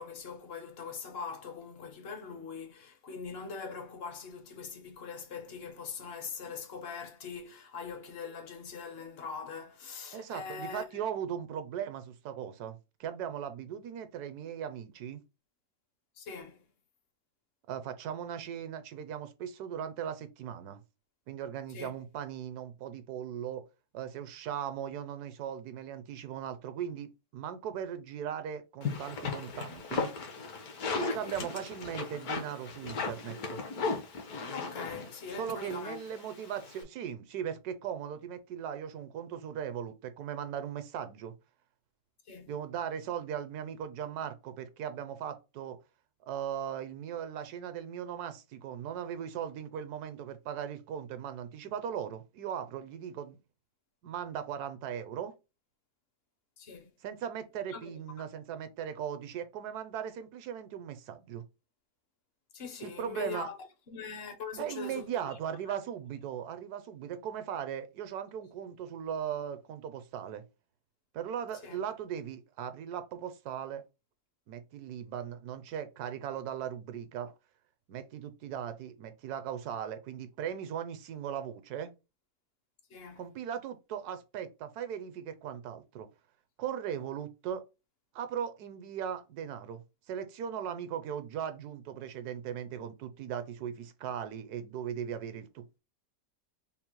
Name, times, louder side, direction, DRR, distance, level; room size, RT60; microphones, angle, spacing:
voice 1, 0.0-11.0 16.2-16.6 21.7-21.9 31.2-31.5 34.5-36.0 42.3-42.5 56.6-56.9 57.7-58.0 62.5-63.6 63.9-65.3 65.7-65.8 71.6-71.8 82.9-83.3, left 5 dB, 50° left, 0.8 m, -42 dB
voice 2, 10.1-15.2 17.7-20.8 21.3-23.6 23.9-30.1 30.9-33.6 35.4-41.3 42.5-45.8 46.3-53.4 54.0-55.3 57.0-61.4 62.8-63.5 64.6-70.4 71.1-73.8 74.5-77.3 77.9-81.9 83.2-86.1 86.6-87.6 88.1-95.8, right 9 dB, 75° right, 1.1 m, -38 dB
sound 1, 28.8-36.8, left 4 dB, 70° left, 1.3 m, -36 dB
3.8 x 2.0 x 4.4 m
omnidirectional pair, 1.7 m